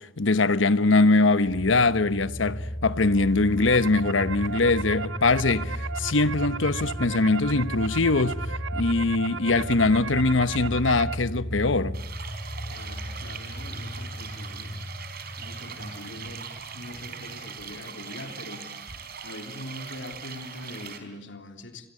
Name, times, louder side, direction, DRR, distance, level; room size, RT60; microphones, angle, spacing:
voice 1, 0.0-8.4 8.7-12.0, left 3 dB, 90° left, 1.1 m, -22 dB
sound 1, 1.4-19.0 19.3-19.4, equal, 45° left, 5.0 m, -36 dB
Insomniac Snyth Loop Rev, 3.3-11.2, right 5 dB, 90° right, 1.1 m, -36 dB
sound 2, 11.9-21.0, right 6 dB, 55° right, 4.5 m, -41 dB
voice 2, 12.7-14.8 15.4-16.5 16.7-18.7 19.2-21.9, left 1 dB, 70° left, 3.4 m, -42 dB
29.5 x 23.0 x 8.5 m
head